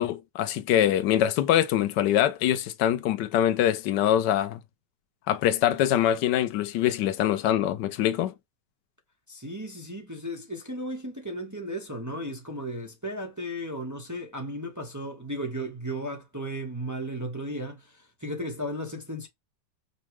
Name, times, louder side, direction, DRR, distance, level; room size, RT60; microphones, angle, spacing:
voice 1, 0.0-4.6 5.3-8.3, left 11 dB, 85° left, 1.3 m, -24 dB
voice 2, 9.3-19.3, equal, 15° right, 0.8 m, -35 dB
5.4 x 2.3 x 3.0 m
omnidirectional pair, 1.8 m